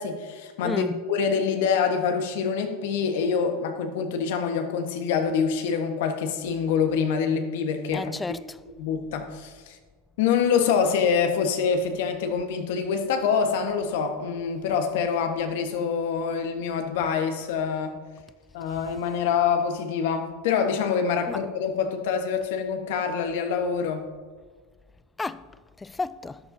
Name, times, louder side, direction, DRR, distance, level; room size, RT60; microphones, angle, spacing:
voice 1, 0.0-8.1 8.8-9.8 10.2-18.0 18.5-24.0, left 6 dB, 70° left, 1.3 m, -25 dB
voice 2, 0.6-1.0 7.9-8.6 21.3-21.4 25.2-25.5 25.8-26.4, left 3 dB, 15° left, 0.4 m, -32 dB
13.5 x 10.5 x 2.7 m
hypercardioid pair, 100°, 0 cm